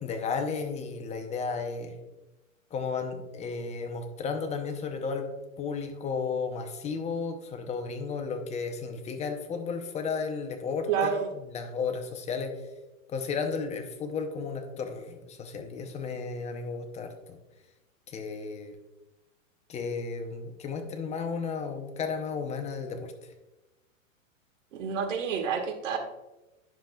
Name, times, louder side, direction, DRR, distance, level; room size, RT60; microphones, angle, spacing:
voice 1, 0.0-2.0 2.7-5.3 5.6-10.9 11.5-12.6 13.1-17.4 18.1-18.7 19.7-23.1, left 5 dB, 15° left, 6 dB, 0.7 m, -33 dB
voice 2, 10.9-11.3 24.7-26.0, right 6 dB, 65° right, 4 dB, 1.6 m, -29 dB
10.5 x 6.5 x 2.3 m, 1.0 s
hypercardioid pair, 125°, 40 cm